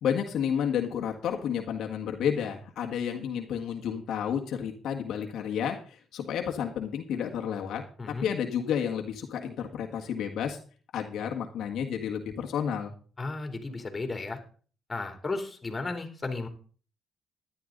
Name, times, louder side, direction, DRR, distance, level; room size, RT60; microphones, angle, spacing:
voice 1, 0.0-7.8 8.2-10.6 10.9-12.9, left 8 dB, 75° left, 2 dB, 1.7 m, -31 dB
voice 2, 13.2-14.4 14.9-16.5, left 3 dB, 25° left, 5 dB, 3.2 m, -34 dB
13.5 x 11.0 x 4.0 m, 0.40 s
cardioid pair, 90°, 0 cm